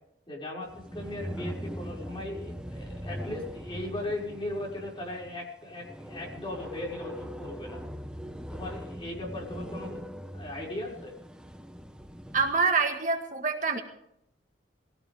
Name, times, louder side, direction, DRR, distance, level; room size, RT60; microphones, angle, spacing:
voice 1, 0.3-7.8 8.5-10.0 10.3-11.1, left 1 dB, 25° left, -2 dB, 6.0 m, -38 dB
sound 1, 0.7-12.7, equal, 5° right, 1.3 m, -41 dB
voice 2, 12.3-13.8, right 4 dB, 45° right, 4 dB, 1.9 m, -26 dB
22.0 x 17.0 x 3.6 m, 0.75 s
head